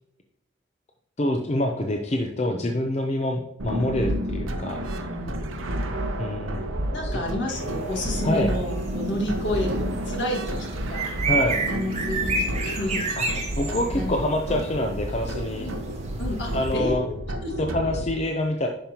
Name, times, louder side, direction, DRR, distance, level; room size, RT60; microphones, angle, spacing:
voice 1, 1.2-4.8 6.2-6.6 7.0-7.2 8.2-8.5 11.3-11.6 13.2-13.3 13.6-15.7 16.5-17.0 17.6-18.7, left 1 dB, 30° left, 3 dB, 0.5 m, -26 dB
sound 1, 3.6-18.1, equal, 85° right, 0.9 m, -30 dB
voice 2, 5.0-5.8 6.9-11.1 11.7-12.3 12.6-13.0 13.9-14.2 15.6-15.8 16.2-17.2 17.4-17.7, left 1 dB, 60° left, 0 dB, 1.8 m, -30 dB
sound 2, 7.5-16.7, right 4 dB, 35° right, 1.4 m, -32 dB
10.0 x 5.3 x 2.9 m, 0.88 s
head